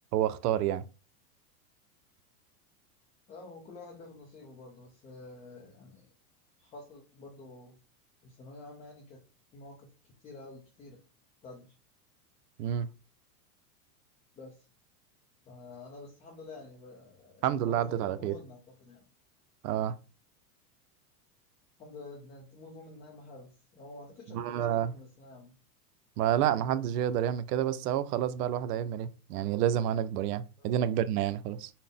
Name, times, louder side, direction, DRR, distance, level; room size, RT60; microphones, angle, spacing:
voice 1, 0.1-0.8 12.6-12.9 17.4-18.3 19.6-20.0 24.3-24.9 26.2-31.7, right 10 dB, 80° right, 0.5 m, -29 dB
voice 2, 3.3-6.1 6.6-7.8 8.2-9.2 9.5-11.0 11.4-11.8 14.4-14.7 15.5-19.1 21.8-25.6 30.6-30.7, left 2 dB, 15° left, 0.4 m, -49 dB
4.0 x 2.1 x 3.5 m
supercardioid pair, 130°, 47 cm